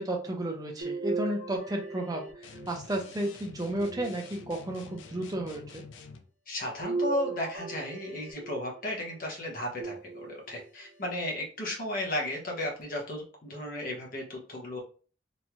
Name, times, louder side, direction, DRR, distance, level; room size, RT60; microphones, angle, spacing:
voice 1, 0.0-5.8, right 1 dB, 20° right, 1 dB, 0.6 m, -33 dB
sound 1, 0.8-3.1 3.8-4.8 6.8-8.9 9.8-10.7 11.3-11.4 12.8-12.9, right 4 dB, 70° right, 1.0 m, -37 dB
sound 2, 2.4-6.3, left 5 dB, 80° left, 0.4 m, -48 dB
voice 2, 6.5-14.8, left 1 dB, 45° left, -1 dB, 0.9 m, -34 dB
3.0 x 2.7 x 2.2 m, 0.40 s
head